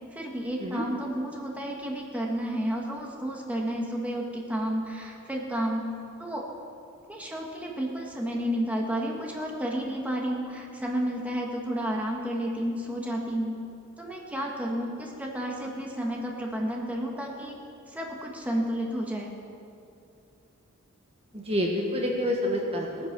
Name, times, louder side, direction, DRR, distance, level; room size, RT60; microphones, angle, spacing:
voice 1, 0.1-5.9 6.2-6.5 7.1-13.6 14.0-17.6 17.9-19.3, equal, 5° right, -1 dB, 1.5 m, -31 dB
voice 2, 21.3-23.1, left 1 dB, 30° right, 0 dB, 1.4 m, -28 dB
18.0 x 9.8 x 6.1 m, 2.6 s
head